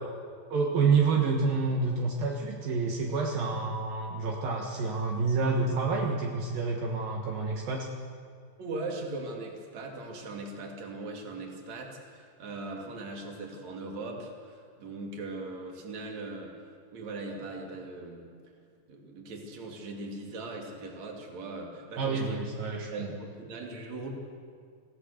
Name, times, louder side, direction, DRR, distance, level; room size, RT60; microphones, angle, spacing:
voice 1, 0.5-7.9 22.0-23.1, right 4 dB, 70° right, -1 dB, 3.3 m, -28 dB
voice 2, 8.6-18.3 18.9-22.4 22.9-24.1, right 2 dB, 50° right, 0 dB, 3.6 m, -40 dB
26.5 x 17.0 x 6.6 m, 2.1 s
omnidirectional pair, 4.3 m